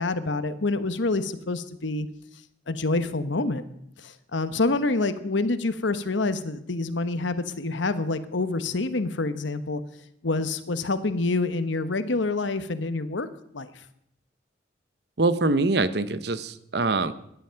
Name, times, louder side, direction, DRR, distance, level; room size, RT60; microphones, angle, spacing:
voice 1, 0.0-2.1 2.7-3.6 4.0-9.8 10.2-13.3 13.5-13.8, left 3 dB, 80° left, 11 dB, 1.1 m, -27 dB
voice 2, 15.2-17.1, right 3 dB, 60° right, 13 dB, 0.9 m, -24 dB
17.0 x 11.5 x 5.8 m, 0.76 s
head